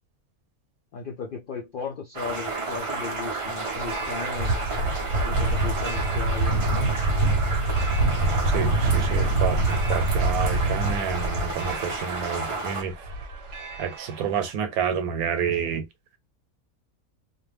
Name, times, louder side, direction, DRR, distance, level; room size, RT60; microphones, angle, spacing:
voice 1, 0.9-4.7 5.0-7.0, left 5 dB, 75° left, 0.4 m, -36 dB
sound 1, 2.1-12.8, right 3 dB, 40° right, 0.4 m, -32 dB
sound 2, 3.7-14.5, right 2 dB, 65° right, 1.0 m, -26 dB
voice 2, 8.5-12.9 13.8-15.9, right 7 dB, 85° right, 1.1 m, -29 dB
2.4 x 2.1 x 3.2 m
omnidirectional pair, 1.5 m